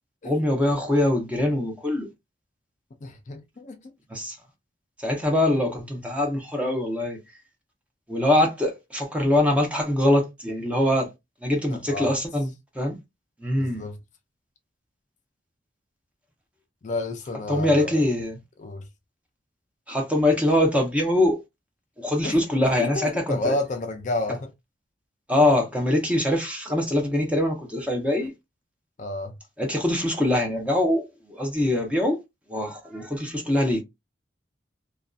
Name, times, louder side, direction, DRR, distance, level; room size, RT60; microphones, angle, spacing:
voice 1, 0.2-2.1 4.1-4.4 5.0-7.2 8.1-11.1 11.4-13.0 13.4-13.8 17.5-18.4 19.9-21.4 22.0-23.6 25.3-28.3 29.6-32.2 32.5-33.8, left 1 dB, 5° right, 0.6 m, -23 dB
voice 2, 3.0-3.9 11.9-12.1 13.6-14.0 16.8-18.0 18.6-18.8 22.2-22.4 22.8-24.4 29.0-29.3, left 2 dB, 40° left, 0.4 m, -30 dB
2.5 x 2.2 x 2.3 m
head